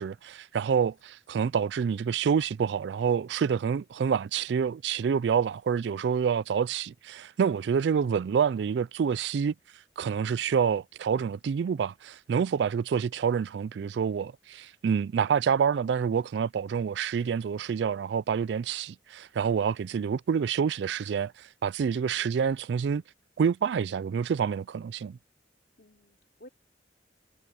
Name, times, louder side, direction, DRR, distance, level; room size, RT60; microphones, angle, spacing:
voice 1, 0.0-9.5 10.0-23.0 23.4-25.2, right 7 dB, 70° right, 0.3 m, -27 dB
voice 2, 25.8-26.5, equal, 60° left, 5.0 m, -54 dB
head